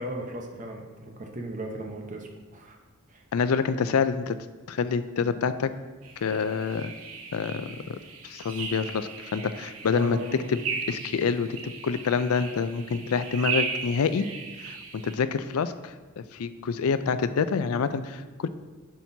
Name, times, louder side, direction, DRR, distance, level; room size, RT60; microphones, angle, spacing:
voice 1, 0.0-2.8 3.1-3.2 9.9-10.5, right 1 dB, 35° right, 2 dB, 0.9 m, -37 dB
voice 2, 3.3-4.4 4.7-5.7 6.2-6.9 7.3-8.0 8.2-10.2 10.5-10.6 10.9-14.3 14.6-18.5, left 5 dB, 75° left, 12 dB, 0.4 m, -27 dB
sound 1, 6.0-15.2, right 5 dB, 75° right, 0.8 m, -36 dB
10.0 x 6.0 x 2.7 m, 1.3 s
head